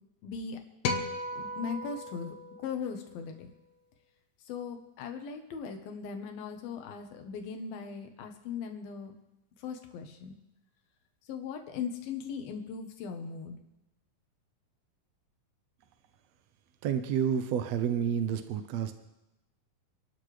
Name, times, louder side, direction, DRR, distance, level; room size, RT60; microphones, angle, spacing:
voice 1, 0.2-0.6 1.4-2.3 2.6-3.5 4.5-9.1 9.6-10.3 11.3-13.6, left 6 dB, 90° left, 5 dB, 3.1 m, -39 dB
sound 1, 0.8-3.3, left 3 dB, 65° left, 2.0 m, -36 dB
voice 2, 16.8-18.9, right 8 dB, 80° right, 9 dB, 1.5 m, -29 dB
27.0 x 12.0 x 3.3 m, 0.94 s
omnidirectional pair, 4.1 m